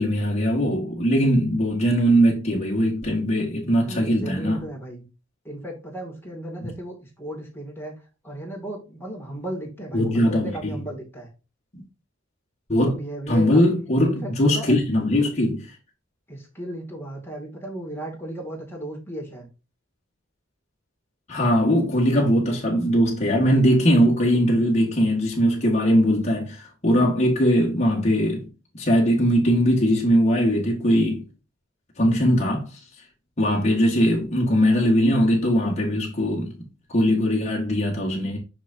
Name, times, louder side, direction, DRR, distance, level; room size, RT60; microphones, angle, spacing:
voice 1, 0.0-4.6 6.6-6.7 9.9-10.8 11.7-11.8 12.7-12.9 13.3-15.7 21.3-28.5 28.8-31.2 32.0-32.8 33.4-36.6 36.9-38.4, equal, 35° left, 1.7 m, -20 dB
voice 2, 3.8-5.1 5.4-11.3 12.9-13.7 14.0-14.8 16.3-19.5, right 1 dB, 10° left, 2.4 m, -35 dB
6.1 x 6.0 x 2.7 m
head